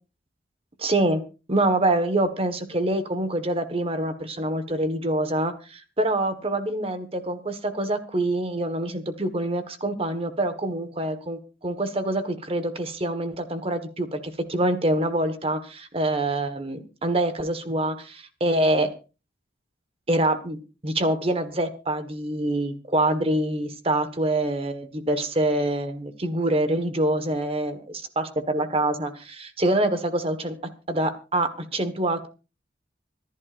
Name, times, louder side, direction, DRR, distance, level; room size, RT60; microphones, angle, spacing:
voice 1, 0.8-1.2 1.5-18.9 20.1-27.8 28.1-32.3, right 1 dB, 35° right, 9 dB, 1.5 m, -25 dB
25.5 x 11.0 x 2.6 m, 0.32 s
head